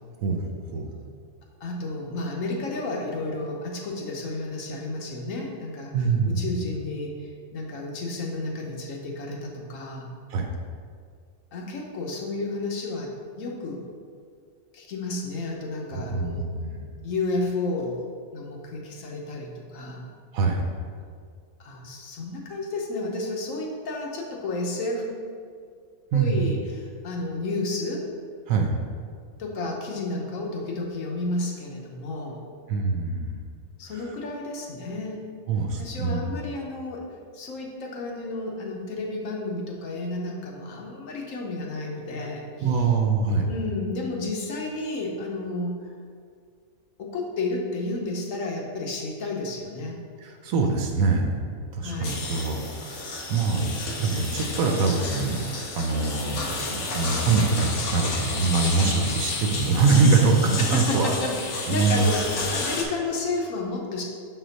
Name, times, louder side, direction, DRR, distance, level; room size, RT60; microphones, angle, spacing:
voice 1, 0.2-0.9 5.9-6.5 10.3-10.6 15.9-16.9 20.3-20.7 26.1-26.5 28.5-28.7 32.7-33.4 35.5-36.2 42.6-43.5 50.2-53.7 54.0-55.4 55.7-56.4 56.7-61.1 61.7-62.1, right 4 dB, 80° right, 2 dB, 1.0 m, -24 dB
voice 2, 1.6-5.9 6.2-10.1 11.5-13.1 13.4-13.8 14.7-16.5 17.0-18.0 18.3-20.0 21.6-25.2 26.1-28.1 29.4-32.4 33.8-35.2 35.8-37.0 37.3-42.8 43.5-45.7 47.0-50.0 51.8-52.2 60.6-62.2 62.5-64.0, left 2 dB, 70° left, -1 dB, 1.2 m, -31 dB
sound 1, 52.0-62.8, left 3 dB, 85° left, 1.3 m, -31 dB
6.3 x 4.3 x 4.0 m, 2.1 s
omnidirectional pair, 1.5 m